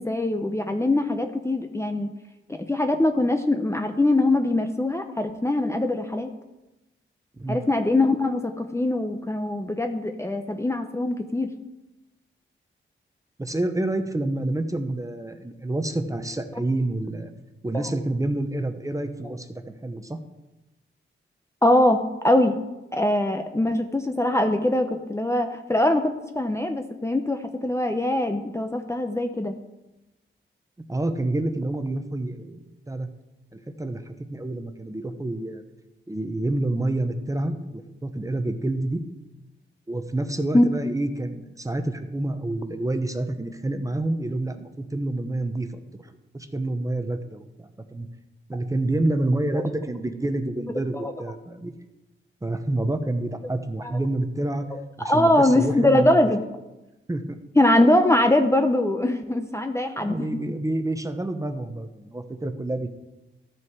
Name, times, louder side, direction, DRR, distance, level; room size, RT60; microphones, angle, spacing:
voice 1, 0.0-2.1 2.5-6.3 7.5-11.5 21.6-22.6 22.9-29.5 40.5-40.6 49.5-49.6 50.9-51.1 53.8-54.0 55.0-56.4 57.6-60.3, left 1 dB, 15° left, 6 dB, 0.6 m, -22 dB
voice 2, 13.4-17.3 17.6-20.2 30.9-33.1 33.5-35.6 36.1-39.0 39.9-45.7 46.0-48.1 48.5-51.7 52.4-54.7 55.0-56.2 57.1-57.4 60.0-62.9, right 2 dB, 15° right, 8 dB, 0.8 m, -28 dB
13.5 x 5.9 x 4.7 m, 1.0 s
wide cardioid pair, 90°, 21 cm